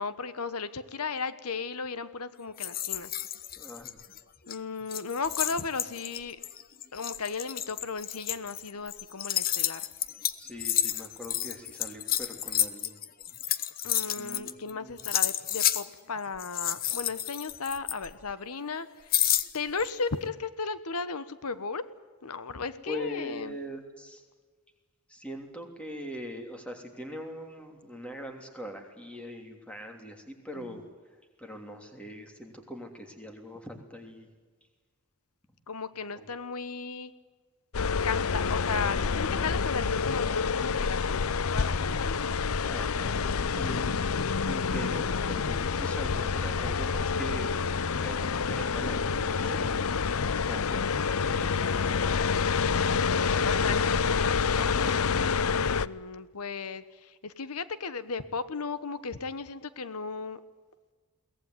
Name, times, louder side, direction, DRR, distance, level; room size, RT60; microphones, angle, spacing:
voice 1, 0.0-3.1 4.5-6.4 6.9-9.9 13.8-19.1 19.5-21.8 22.2-23.6 30.5-30.8 35.7-37.1 38.0-42.8 53.1-54.0 55.1-60.4, left 4 dB, 90° left, 14 dB, 1.1 m, -35 dB
sound 1, 2.6-4.2 4.5-4.6 4.9-14.7 15.0-15.9 16.4-18.3 19.1-19.9, left 11 dB, 40° left, 1.0 m, -31 dB
voice 2, 3.5-4.0 10.4-13.0 14.2-15.0 22.9-24.2 25.1-30.8 31.4-34.3 36.1-36.3 42.6-43.2 43.5-44.2 44.4-47.6 48.0-49.8 50.4-50.8 51.2-52.1 53.1-53.8 54.5-55.4, left 1 dB, 5° left, 4 dB, 3.1 m, -41 dB
sound 2, 37.7-55.9, left 5 dB, 70° left, 0.6 m, -28 dB
22.5 x 18.5 x 9.7 m, 1.4 s
head